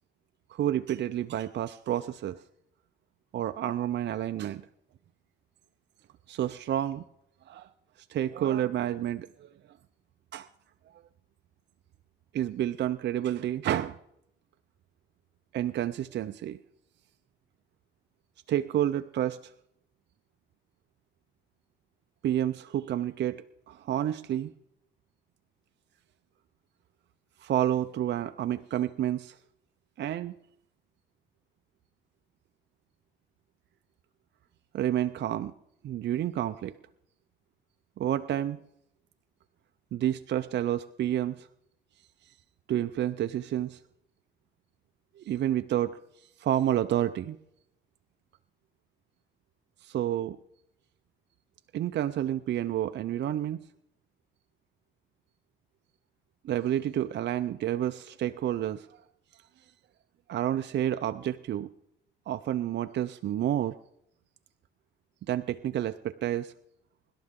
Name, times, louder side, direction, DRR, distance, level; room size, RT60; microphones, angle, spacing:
voice 1, 0.5-2.4 3.3-4.6 6.3-7.0 7.5-7.7 8.1-9.5 10.3-10.5 12.3-14.0 15.5-16.6 18.5-19.5 22.2-24.5 27.4-29.4 30.0-30.3 34.7-35.5 35.8-36.8 38.0-38.6 39.9-41.5 42.3-42.4 42.7-43.8 45.2-46.0 46.4-47.4 49.8-50.4 51.7-53.6 56.4-59.0 60.3-61.7 62.3-63.8 65.3-66.5, right 11 dB, 60° right, 10 dB, 0.6 m, -29 dB
24.0 x 12.0 x 3.7 m, 0.78 s
cardioid pair, 90°, 20 cm